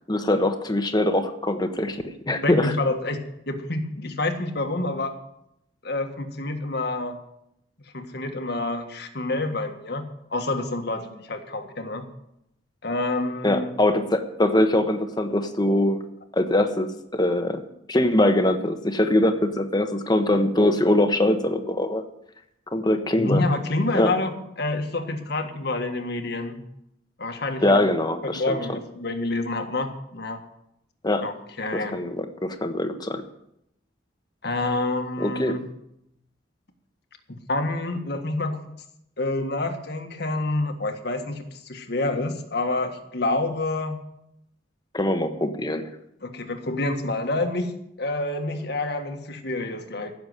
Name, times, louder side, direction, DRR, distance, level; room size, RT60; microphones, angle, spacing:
voice 1, 0.1-2.7 13.4-16.0 16.4-17.6 17.9-22.0 22.7-23.4 23.9-24.1 27.6-28.6 31.0-31.2 31.9-33.2 35.2-35.6 44.9-45.9, left 1 dB, 20° left, 7 dB, 1.1 m, -22 dB
voice 2, 2.4-5.2 5.8-7.2 7.9-12.0 12.8-13.7 23.2-26.6 27.2-27.8 28.2-30.4 31.2-32.0 34.4-35.6 37.3-38.8 39.2-44.0 46.2-47.7 48.0-50.1, left 2 dB, 55° left, 6 dB, 1.6 m, -28 dB
15.5 x 6.9 x 7.9 m, 0.80 s
head